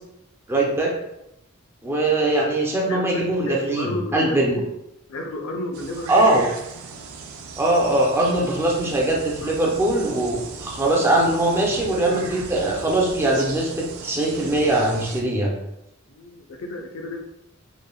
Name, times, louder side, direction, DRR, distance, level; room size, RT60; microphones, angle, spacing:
voice 1, 0.5-0.9 1.8-4.6 6.1-6.5 7.6-15.5, right 1 dB, 10° right, -2 dB, 0.4 m, -21 dB
voice 2, 2.9-4.7 5.1-6.3 8.3-8.5 9.4-9.5 16.1-17.2, left 2 dB, 80° left, 3 dB, 0.5 m, -32 dB
sound 1, 5.7-15.2, right 4 dB, 85° right, 0.4 m, -37 dB
3.1 x 2.2 x 2.3 m, 0.85 s
head